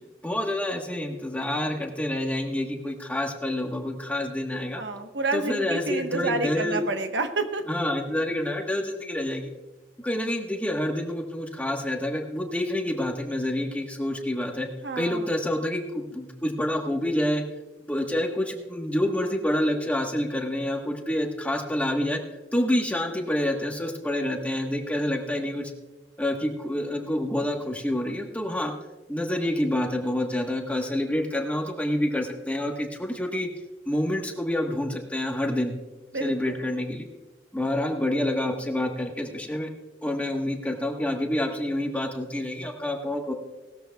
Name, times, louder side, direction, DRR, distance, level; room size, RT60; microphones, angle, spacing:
voice 1, 0.2-4.8 5.3-6.8 7.7-9.5 10.0-14.7 14.9-17.4 17.9-22.2 22.5-25.7 26.2-28.7 29.1-33.5 33.8-35.7 36.2-37.1 37.5-39.7 40.0-43.3, left 1 dB, 10° left, 2 dB, 1.2 m, -28 dB
voice 2, 4.8-7.6 14.8-15.3 36.1-36.6, right 3 dB, 70° right, 6 dB, 1.1 m, -29 dB
18.5 x 13.0 x 2.3 m, 1.1 s
head